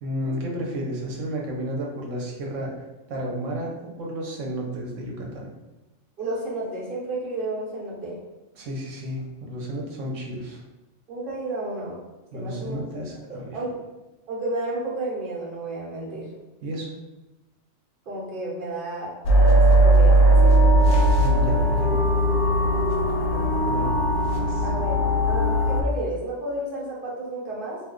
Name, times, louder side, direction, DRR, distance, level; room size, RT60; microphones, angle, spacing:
voice 1, 0.0-2.7 3.1-5.5 8.6-10.6 12.3-13.5 16.6-17.0 21.2-22.1 23.7-23.9 24.3-24.6, equal, 80° right, -1 dB, 1.1 m, -32 dB
voice 2, 6.2-8.2 11.1-12.0 12.3-13.0 13.3-13.8 14.3-16.3 18.1-20.9 23.3-23.9 24.6-27.8, right 2 dB, 45° right, -5 dB, 1.0 m, -32 dB
sound 1, 19.3-25.8, right 1 dB, 75° left, 0.9 m, -18 dB
2.5 x 2.3 x 3.6 m, 1.0 s
omnidirectional pair, 1.3 m